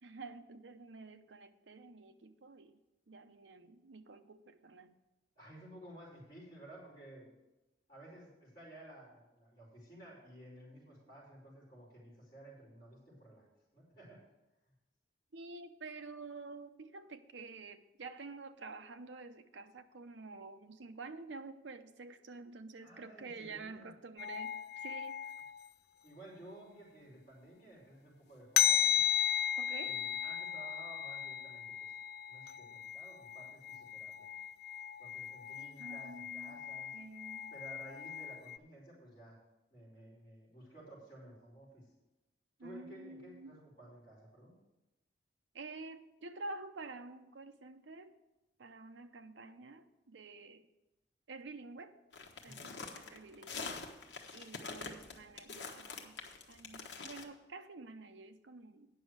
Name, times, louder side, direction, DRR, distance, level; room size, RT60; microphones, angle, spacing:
voice 1, 0.0-2.8 3.1-5.0 15.3-25.2 29.6-30.0 35.8-36.6 36.9-37.5 42.6-43.6 45.5-48.2 48.6-50.7 51.3-51.9 52.4-53.7 54.3-56.2 56.5-58.9, right 3 dB, 90° right, 9 dB, 0.7 m, -49 dB
voice 2, 5.3-7.3 7.9-13.4 13.7-14.2 22.8-23.9 26.0-29.0 29.8-31.9 32.3-34.3 35.0-36.9 37.5-39.4 39.7-41.9 42.6-44.5 52.4-52.7, right 1 dB, 25° left, -9 dB, 4.6 m, -54 dB
sound 1, 24.2-25.7 28.6-38.6, left 10 dB, 60° left, 0.3 m, -36 dB
sound 2, 52.1-57.2, left 4 dB, 80° left, 1.2 m, -45 dB
9.3 x 6.2 x 7.9 m, 1.0 s
head